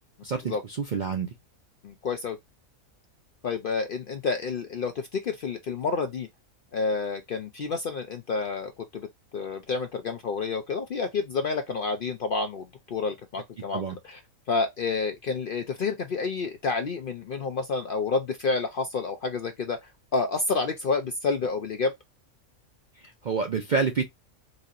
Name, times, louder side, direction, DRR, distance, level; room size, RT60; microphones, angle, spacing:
voice 1, 0.2-1.3 13.7-14.0 23.0-24.0, right 5 dB, 55° right, 0.5 m, -28 dB
voice 2, 1.8-2.4 3.4-6.3 6.7-9.1 9.3-14.2 14.5-19.8 20.1-21.9, left 4 dB, 60° left, 0.6 m, -29 dB
4.0 x 2.8 x 2.5 m
omnidirectional pair, 1.4 m